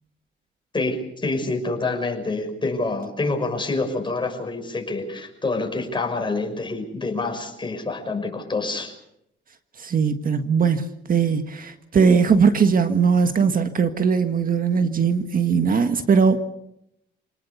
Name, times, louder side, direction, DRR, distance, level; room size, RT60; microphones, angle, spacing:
voice 1, 0.7-8.9, left 3 dB, 25° left, 6.0 m, -27 dB
voice 2, 9.8-16.4, right 6 dB, 45° right, 1.7 m, -20 dB
28.0 x 19.0 x 6.9 m
cardioid pair, 90°, 20 cm